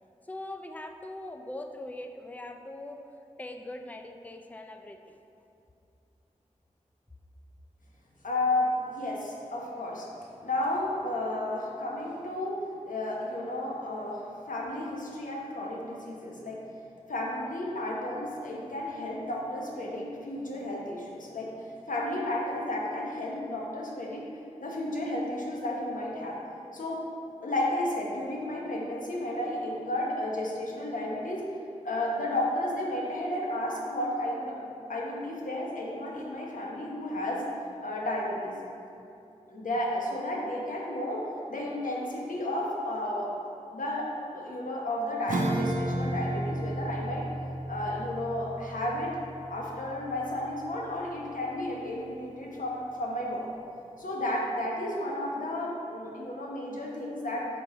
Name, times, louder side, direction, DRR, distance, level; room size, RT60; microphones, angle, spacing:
voice 1, 0.3-3.0 3.4-5.2, left 1 dB, 10° left, 5 dB, 0.4 m, -41 dB
voice 2, 8.2-10.1 10.4-12.5 12.9-16.6 17.1-21.5 21.9-24.3 24.6-26.4 26.7-27.0 27.4-31.4 31.8-37.5 37.8-38.6 39.5-47.3 47.7-49.2 49.5-53.4 54.0-57.5, left 1 dB, 80° left, -3 dB, 1.0 m, -32 dB
Acoustic guitar / Strum, 45.3-51.3, right 1 dB, 75° right, 0.6 m, -34 dB
5.4 x 4.0 x 4.6 m, 2.7 s
cardioid pair, 45°, 13 cm